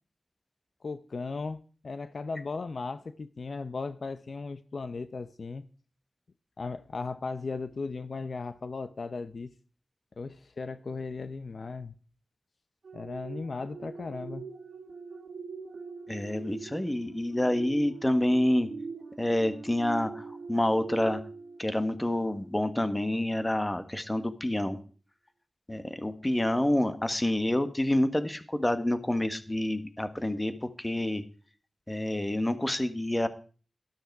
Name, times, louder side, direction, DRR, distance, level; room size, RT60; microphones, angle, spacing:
voice 1, 0.8-5.7 6.6-9.5 10.2-11.9 12.9-14.5, left 4 dB, 65° left, 0.7 m, -37 dB
sound 1, 12.8-22.7 23.2-23.4, right 4 dB, 80° right, 1.9 m, -43 dB
voice 2, 16.1-18.7 19.2-21.2 21.6-24.8 25.7-31.2 31.9-33.3, left 1 dB, 15° left, 1.5 m, -28 dB
12.5 x 12.0 x 4.7 m
wide cardioid pair, 75°, 0 cm